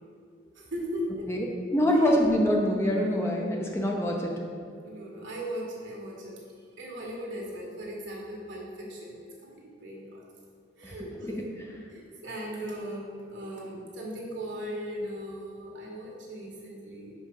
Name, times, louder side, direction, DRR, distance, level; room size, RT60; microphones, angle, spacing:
voice 1, 0.5-1.3 1.9-2.1 4.8-6.4 6.7-9.1 9.4-10.2 10.8-11.3 11.8-17.1, equal, 75° right, -3 dB, 1.7 m, -38 dB
voice 2, 1.7-4.3 10.8-10.9 11.2-11.8, equal, 15° left, -1 dB, 0.6 m, -25 dB
5.2 x 5.2 x 5.5 m, 2.2 s
head